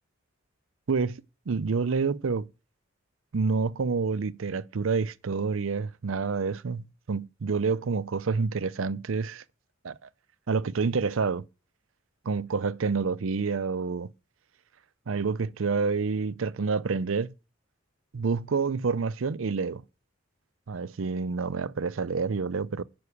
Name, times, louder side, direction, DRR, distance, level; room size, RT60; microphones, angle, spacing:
voice 1, 0.9-2.5 3.3-9.4 9.8-9.9 10.5-11.4 12.2-14.1 15.1-17.3 18.1-19.8 20.7-22.8, right 4 dB, 75° right, 0.5 m, -28 dB
9.5 x 6.1 x 8.4 m
head